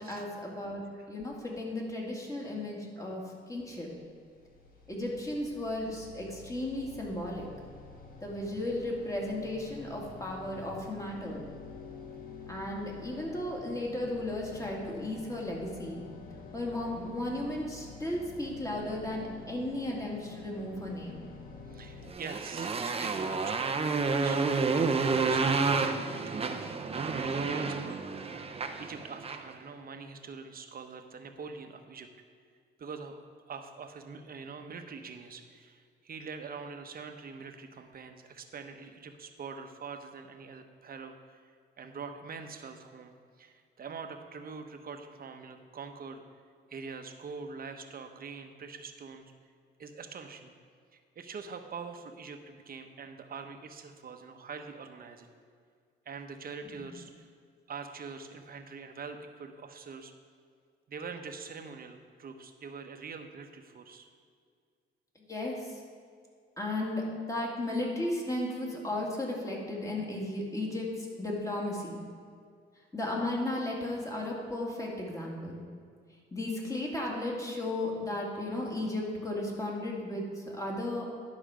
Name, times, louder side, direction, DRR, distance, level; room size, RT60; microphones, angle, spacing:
voice 1, 0.0-0.8 1.1-3.2 3.5-3.9 4.9-7.5 8.2-11.4 12.5-16.0 16.5-21.2 56.7-56.9 65.3-65.8 66.6-72.0 72.9-75.6 76.3-81.0, left 1 dB, 15° left, -2 dB, 2.4 m, -35 dB
sound 1, 3.6-22.1, left 4 dB, 45° left, 1.4 m, -48 dB
voice 2, 21.7-25.6 26.3-32.1 32.8-41.5 41.8-46.2 46.7-49.3 49.8-50.5 50.9-55.3 56.0-57.3 57.7-60.1 60.9-64.1, right 5 dB, 50° right, 5 dB, 1.0 m, -44 dB
Motorcycle, 22.1-29.5, right 4 dB, 30° right, 0.7 m, -30 dB
11.5 x 6.1 x 5.1 m, 2.1 s
cardioid pair, 90°, 20 cm